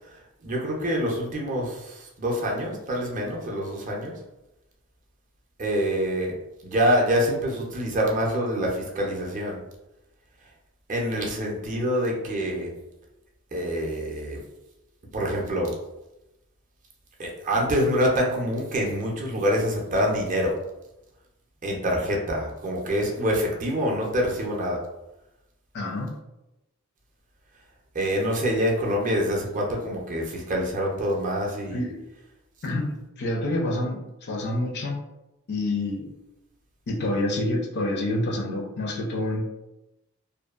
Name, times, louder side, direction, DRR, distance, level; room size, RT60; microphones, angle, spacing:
voice 1, 0.0-4.2 5.6-6.4 6.6-9.6 10.9-12.7 13.5-14.4 15.1-15.8 17.2-20.6 21.6-24.8 27.9-31.8, equal, 35° right, -1 dB, 0.5 m, -26 dB
voice 2, 25.7-26.1 31.7-32.0 32.6-35.0 35.5-36.1 36.9-39.5, left 1 dB, 50° left, 1 dB, 0.4 m, -28 dB
2.5 x 2.2 x 2.3 m, 0.93 s
head